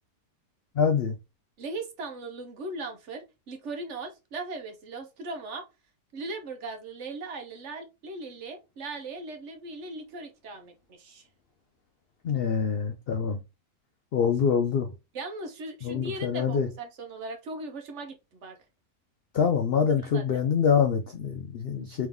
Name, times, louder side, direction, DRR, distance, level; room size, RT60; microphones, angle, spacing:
voice 1, 0.8-1.2 12.2-13.4 14.1-14.9 15.8-16.7 19.3-22.1, left 6 dB, 90° left, 0.5 m, -25 dB
voice 2, 1.6-5.7 6.1-11.3 15.1-18.6 20.1-20.2, right 2 dB, 55° right, 1.0 m, -38 dB
3.5 x 3.1 x 3.4 m
omnidirectional pair, 1.6 m